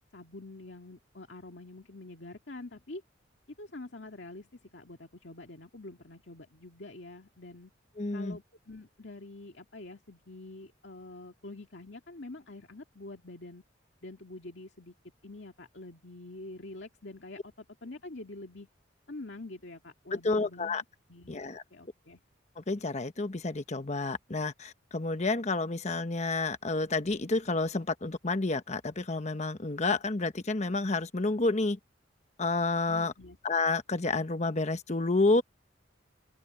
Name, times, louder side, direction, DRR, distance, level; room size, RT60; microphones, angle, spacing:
voice 1, 0.1-3.0 3.6-7.7 8.1-13.6 14.0-14.9 15.2-18.7 19.1-20.8 21.1-22.2 32.9-33.4, left 2 dB, 65° left, 2.2 m, -46 dB
voice 2, 8.0-8.4 20.1-20.8 21.3-21.6 22.6-31.8 32.4-33.1 33.4-35.4, left 3 dB, 35° left, 1.0 m, -30 dB
open air
head